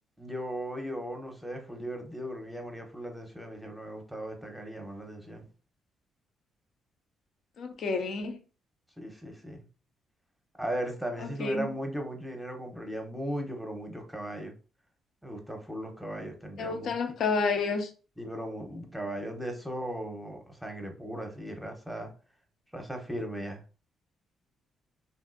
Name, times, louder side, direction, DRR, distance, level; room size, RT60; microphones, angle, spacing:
voice 1, 0.2-5.5 9.0-9.6 10.6-14.5 15.2-16.9 18.2-22.1 22.7-23.6, equal, ahead, 0.8 m, -37 dB
voice 2, 7.6-8.4 11.2-11.7 16.6-17.9, left 4 dB, 65° left, 0.6 m, -30 dB
3.1 x 2.6 x 2.5 m
cardioid pair, 90°, 0 cm